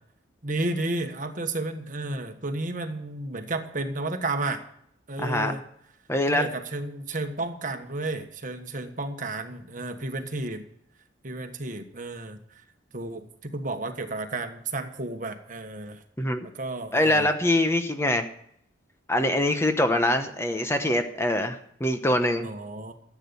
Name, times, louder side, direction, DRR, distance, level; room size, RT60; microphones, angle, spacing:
voice 1, 0.4-4.6 5.1-5.6 6.3-10.6 11.2-12.6 12.9-16.0 16.5-17.3 22.4-22.9, right 2 dB, 40° right, 7 dB, 1.4 m, -32 dB
voice 2, 5.2-5.5 6.1-6.5 16.2-16.4 16.9-18.2 19.1-22.5, left 1 dB, 15° left, 7 dB, 1.0 m, -24 dB
14.5 x 8.5 x 7.1 m, 0.69 s
head